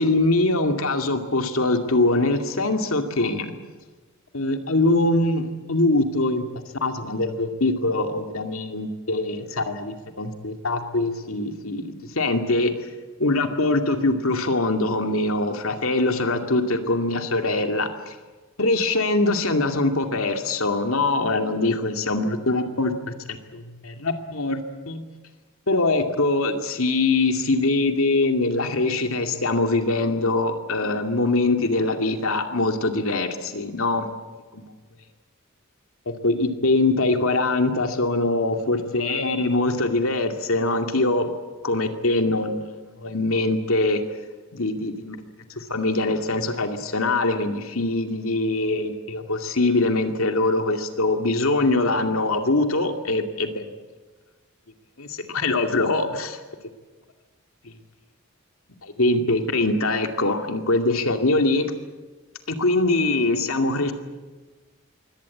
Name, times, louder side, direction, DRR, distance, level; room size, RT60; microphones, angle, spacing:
voice 1, 0.0-3.5 4.3-6.4 6.8-12.7 13.2-18.1 18.6-22.9 23.3-25.0 25.7-34.1 34.5-34.7 36.2-41.3 41.6-44.0 44.5-45.2 45.6-53.7 55.0-56.4 57.6-57.7 58.8-61.7 62.5-63.9, left 2 dB, 85° left, 5 dB, 2.3 m, -23 dB
23.5 x 18.0 x 8.5 m, 1.3 s
head